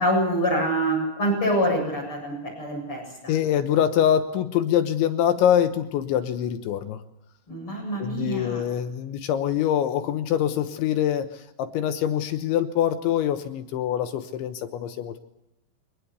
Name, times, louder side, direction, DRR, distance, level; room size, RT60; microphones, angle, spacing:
voice 1, 0.0-3.3 7.5-8.6, equal, 25° left, 0 dB, 8.1 m, -25 dB
voice 2, 3.3-7.0 8.0-15.2, left 10 dB, 75° left, 9 dB, 3.1 m, -24 dB
24.0 x 20.0 x 8.2 m, 0.86 s
omnidirectional pair, 6.0 m